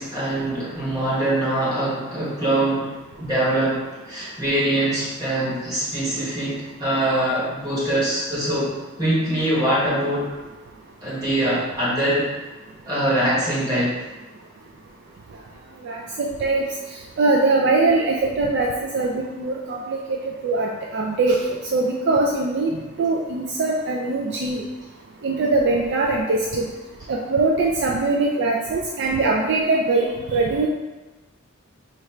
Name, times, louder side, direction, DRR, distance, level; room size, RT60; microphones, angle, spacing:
voice 1, 0.0-10.3 11.0-12.3 12.8-14.0, right 1 dB, 20° right, -9 dB, 1.3 m, -23 dB
voice 2, 15.8-16.6 17.2-18.7 18.9-20.0 20.4-21.4 21.7-22.7 23.0-24.6 25.2-26.6 27.1-30.7, right 3 dB, 55° right, -1 dB, 0.3 m, -21 dB
3.1 x 2.4 x 4.3 m, 1.2 s
head